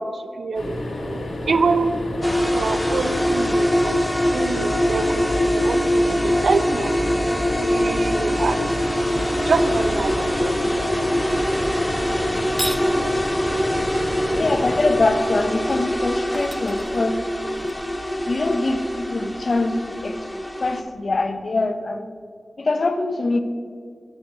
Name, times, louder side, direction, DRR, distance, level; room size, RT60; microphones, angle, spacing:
voice 1, 0.0-1.9 2.4-3.9 4.3-6.9 7.6-8.7 9.5-10.6, right 4 dB, 85° right, 10 dB, 0.5 m, -25 dB
sound 1, 0.5-15.8 17.5-17.7 18.0-18.1, left 1 dB, 75° left, 1.6 m, -30 dB
sound 2, 2.2-20.8, equal, 10° left, 0.8 m, -23 dB
sound 3, 12.4-12.9 15.8-15.9 16.3-17.7, right 1 dB, 20° right, 0.4 m, -33 dB
voice 2, 14.3-17.3 18.3-20.3 20.6-22.1 22.6-23.4, left 2 dB, 60° left, 9 dB, 0.7 m, -23 dB
7.7 x 7.1 x 5.2 m, 2.2 s
cardioid pair, 55°, 0 cm